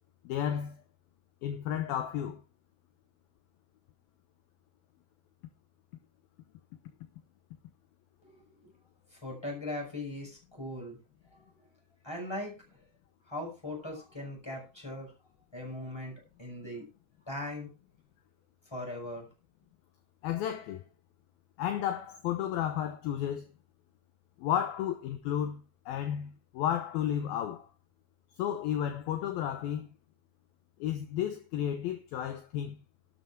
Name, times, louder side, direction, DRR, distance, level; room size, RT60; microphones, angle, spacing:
voice 1, 0.2-0.8 1.4-2.4 20.2-20.8 21.6-23.5 24.4-27.7 28.4-29.9 30.8-32.8, left 10 dB, 70° left, 2.5 m, -32 dB
voice 2, 9.2-11.0 12.0-12.5 13.3-15.1 15.5-16.8 17.3-17.7 18.7-19.3, left 1 dB, 5° left, 5.4 m, -39 dB
12.0 x 9.5 x 4.6 m
omnidirectional pair, 5.1 m